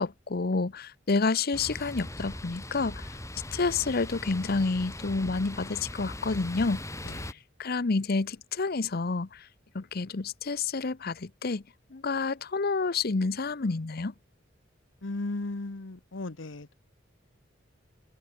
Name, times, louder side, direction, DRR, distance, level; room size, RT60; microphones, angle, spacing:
voice 1, 0.0-3.1 3.5-6.8 7.1-9.5 9.7-11.6 11.9-14.1, left 4 dB, 50° left, 0.8 m, -29 dB
sound 1, 1.5-7.3, left 1 dB, 15° left, 3.3 m, -40 dB
voice 2, 15.0-16.7, left 2 dB, 75° left, 1.1 m, -36 dB
head